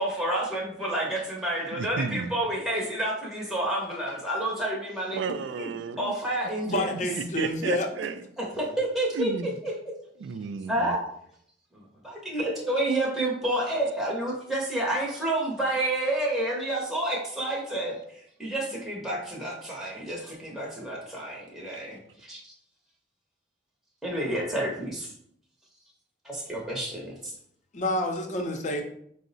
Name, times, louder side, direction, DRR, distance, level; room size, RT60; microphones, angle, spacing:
voice 1, 0.0-5.2 6.0-6.9 8.4-9.7 10.7-11.0 11.7-22.5 24.0-25.1 26.2-27.3, right 1 dB, ahead, -4 dB, 0.7 m, -29 dB
voice 2, 1.7-2.4 5.1-6.1 6.7-8.2 9.1-9.5 10.2-11.0 13.6-13.7, right 5 dB, 75° right, 12 dB, 0.3 m, -33 dB
voice 3, 6.7-7.9 27.7-28.8, left 1 dB, 40° left, 3 dB, 0.6 m, -28 dB
4.6 x 2.0 x 3.9 m, 0.68 s
head